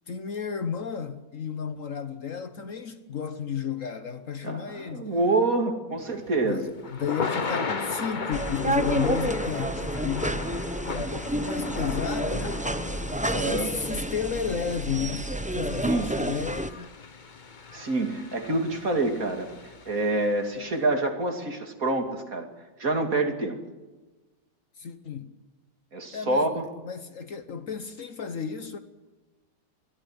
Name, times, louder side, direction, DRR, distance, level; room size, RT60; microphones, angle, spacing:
voice 1, 0.1-5.1 6.4-10.4 10.9-12.7 13.0-16.9 24.8-25.3 26.1-26.5 26.8-28.8, left 7 dB, 50° left, 1.3 m, -33 dB
voice 2, 4.4-6.6 13.1-13.7 15.8-16.1 17.7-22.5 22.8-23.6 25.9-26.6, right 2 dB, 50° right, 3.0 m, -27 dB
Thunder / Rain, 6.1-20.3, left 4 dB, 30° left, 1.1 m, -37 dB
sound 1, 8.3-16.7, right 1 dB, 10° right, 0.4 m, -30 dB
22.0 x 15.5 x 9.7 m
omnidirectional pair, 1.9 m